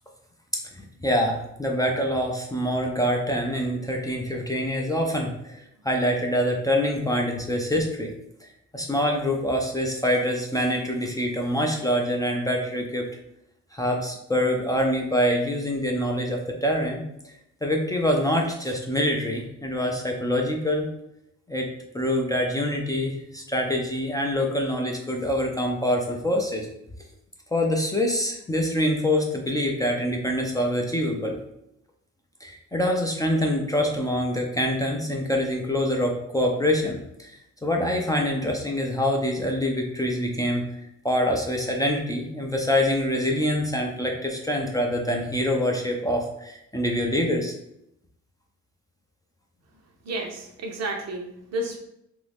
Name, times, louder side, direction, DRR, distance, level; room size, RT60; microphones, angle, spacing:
voice 1, 1.0-8.1 8.4-13.1 13.7-17.3 17.6-20.9 21.5-21.7 21.9-26.7 27.5-31.4 32.4-47.5, equal, 10° left, 0 dB, 0.4 m, -25 dB
voice 2, 50.0-51.8, right 1 dB, 60° right, 1 dB, 0.7 m, -31 dB
2.8 x 2.6 x 3.4 m, 0.80 s
cardioid pair, 90°, 30 cm